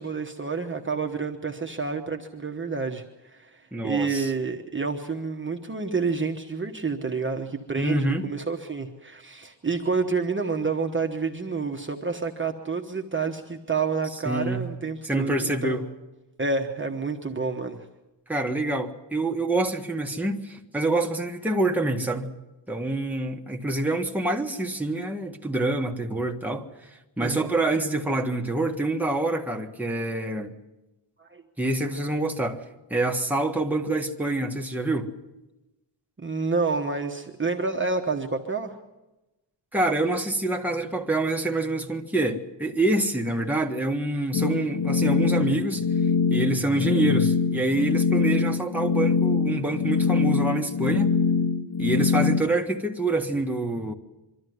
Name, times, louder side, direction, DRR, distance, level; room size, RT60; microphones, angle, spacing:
voice 1, 0.0-15.8 16.4-17.8 27.2-27.5 31.2-31.4 36.2-38.8, right 4 dB, 25° right, 1.2 m, -29 dB
voice 2, 3.7-4.3 7.8-8.2 14.2-14.6 15.0-15.8 18.3-22.3 22.7-26.9 27.2-30.5 31.6-32.6 32.9-35.1 39.7-45.8 46.3-51.1 51.8-53.9, right 2 dB, 5° right, 1.6 m, -26 dB
sound 1, 44.3-52.4, left 5 dB, 70° left, 1.5 m, -23 dB
24.0 x 13.0 x 9.5 m
wide cardioid pair, 125°, 44 cm